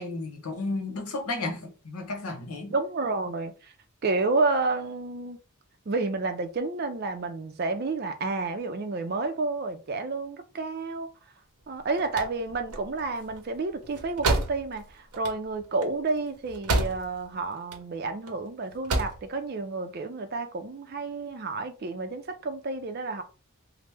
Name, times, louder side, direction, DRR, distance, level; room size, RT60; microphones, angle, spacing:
voice 1, 0.0-2.8, left 2 dB, 85° left, 0.9 m, -33 dB
voice 2, 2.7-3.7 4.0-5.4 5.9-11.1 11.7-23.2, right 3 dB, 45° right, 0.4 m, -30 dB
sound 1, 11.7-17.3 17.6-18.3 18.7-19.3, right 2 dB, 90° right, 0.6 m, -30 dB
3.0 x 2.0 x 3.3 m
head